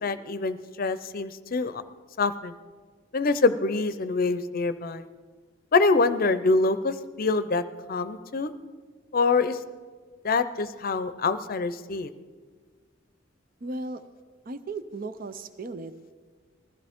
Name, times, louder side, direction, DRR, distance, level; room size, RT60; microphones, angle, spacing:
voice 1, 0.0-1.8 2.2-2.6 3.1-5.1 5.7-7.6 7.9-8.5 9.1-9.6 10.2-12.1, left 3 dB, 50° left, 12 dB, 0.6 m, -25 dB
voice 2, 13.6-14.0 14.5-15.9, right 2 dB, 50° right, 11 dB, 0.6 m, -36 dB
20.0 x 14.5 x 3.6 m, 1.5 s
head